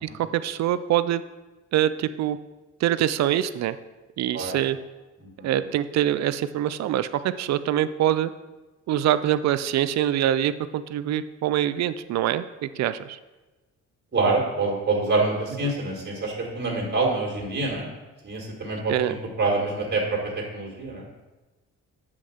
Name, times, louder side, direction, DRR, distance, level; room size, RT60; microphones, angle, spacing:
voice 1, 0.0-1.2 1.7-2.4 2.8-3.8 4.2-4.8 5.4-8.3 8.9-13.2 15.6-15.7 18.9-19.2, right 11 dB, 65° right, 13 dB, 0.5 m, -24 dB
voice 2, 14.1-17.9 18.2-20.2 20.5-21.0, right 3 dB, 35° right, -2 dB, 1.8 m, -26 dB
7.6 x 3.6 x 6.4 m, 1.1 s
cardioid pair, 90°, 30 cm